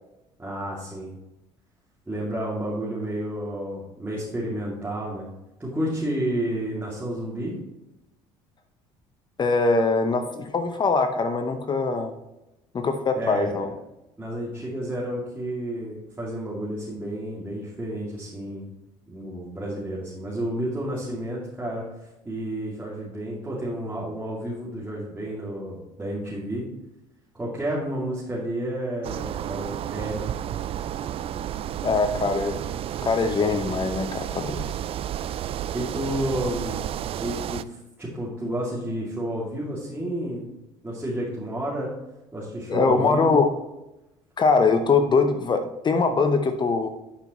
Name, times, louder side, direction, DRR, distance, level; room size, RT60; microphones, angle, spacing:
voice 1, 0.4-1.1 2.1-5.3 5.6-7.6 13.1-13.7 14.2-18.7 19.1-21.8 22.2-26.7 27.3-30.4 35.7-36.8 37.2-40.5 40.8-41.9 42.3-43.4, right 1 dB, 15° right, -7 dB, 2.6 m, -31 dB
voice 2, 9.4-12.1 12.7-13.7 31.8-32.5 33.0-34.6 42.7-43.5 44.4-46.9, left 4 dB, 35° left, 7 dB, 0.8 m, -22 dB
sound 1, 29.0-37.6, right 11 dB, 45° right, 0.4 m, -31 dB
11.5 x 5.8 x 3.1 m, 0.93 s
supercardioid pair, 80°, 13 cm